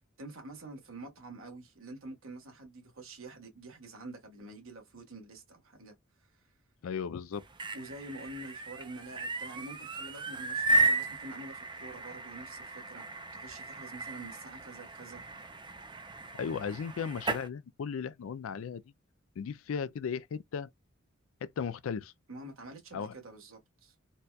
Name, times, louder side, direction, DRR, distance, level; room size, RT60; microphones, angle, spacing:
voice 1, 0.2-5.9 7.7-13.0 13.3-15.2 22.3-23.9, right 2 dB, 70° right, 1.4 m, -47 dB
voice 2, 6.8-7.5 16.3-18.8 19.4-20.7 21.4-22.1 22.9-23.1, left 6 dB, 70° left, 0.4 m, -36 dB
sound 1, 7.3-17.5, right 2 dB, 20° right, 0.5 m, -34 dB
4.0 x 2.2 x 2.3 m
head